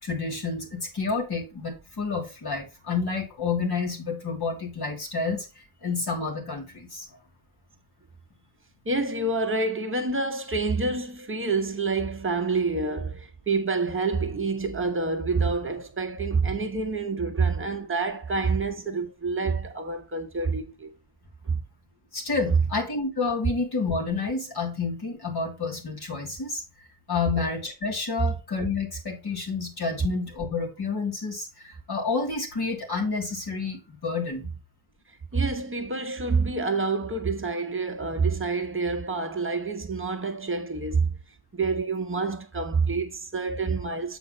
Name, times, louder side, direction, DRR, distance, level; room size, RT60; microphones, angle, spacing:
voice 1, 0.0-5.5 5.8-7.2 22.1-26.6 27.1-34.5, left 4 dB, 50° left, 2.9 m, -29 dB
voice 2, 8.8-20.9 21.4-21.6 35.3-41.1 41.5-44.2, right 4 dB, 25° right, 1.1 m, -27 dB
7.9 x 4.4 x 3.9 m
wide cardioid pair, 145°, 49 cm